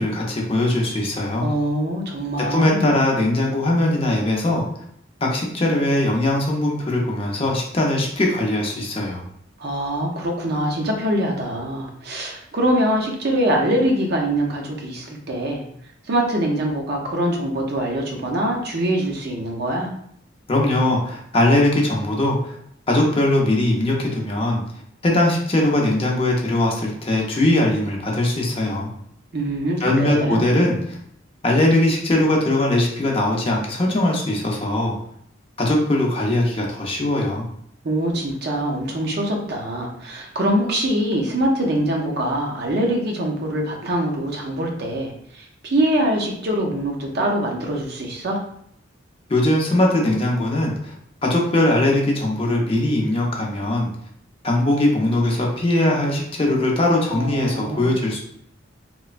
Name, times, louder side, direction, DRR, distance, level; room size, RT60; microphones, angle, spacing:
voice 1, 0.0-1.5 2.5-4.6 5.2-9.2 20.5-22.6 22.9-24.6 25.0-28.9 29.8-31.0 31.4-35.0 35.6-37.5 49.3-50.9 51.2-53.9 54.4-58.2, left 1 dB, 30° left, -1 dB, 0.5 m, -20 dB
voice 2, 1.4-2.9 9.6-15.6 16.0-19.9 29.3-30.4 37.8-48.4 57.1-58.0, right 1 dB, 55° right, 0 dB, 0.6 m, -23 dB
3.0 x 2.1 x 2.4 m, 0.70 s
head